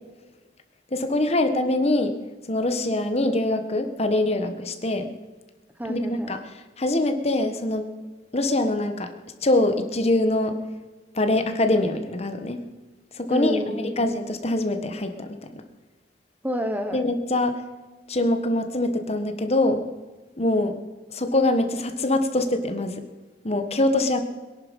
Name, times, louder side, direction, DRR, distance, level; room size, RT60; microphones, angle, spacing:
voice 1, 0.9-2.2 2.5-5.1 5.9-6.4 6.8-7.9 8.3-9.1 9.4-10.6 11.1-12.6 13.2-13.6 14.0-15.6 16.9-17.6 18.1-19.8 20.4-20.8 21.1-23.0 23.4-24.2, left 2 dB, 35° left, 8 dB, 1.5 m, -23 dB
voice 2, 5.8-6.4 13.3-14.0 16.4-17.0 20.5-20.8, equal, 10° right, 7 dB, 1.3 m, -29 dB
22.5 x 11.5 x 5.4 m, 1.3 s
head